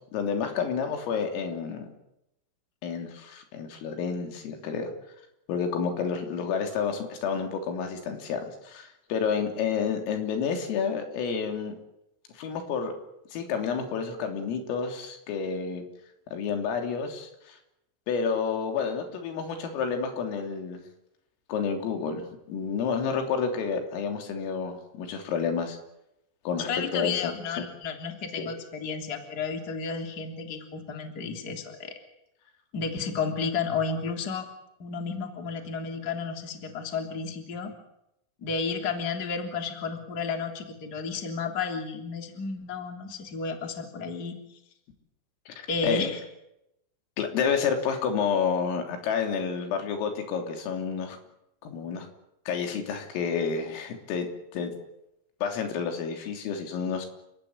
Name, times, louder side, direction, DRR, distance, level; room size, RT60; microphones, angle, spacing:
voice 1, 0.1-1.9 2.8-4.9 5.5-11.8 12.4-12.9 13.3-15.8 16.3-17.6 18.1-20.8 21.5-25.8 26.5-27.7 28.4-28.5 45.5-46.0 47.2-51.2 51.6-52.1 52.5-54.7 55.4-57.1, left 6 dB, 85° left, 5 dB, 5.9 m, -30 dB
voice 2, 26.6-31.9 32.7-34.5 34.8-37.7 38.4-44.3 45.7-46.2, left 5 dB, 25° left, 4 dB, 2.9 m, -32 dB
29.5 x 17.0 x 8.7 m, 0.84 s
omnidirectional pair, 5.8 m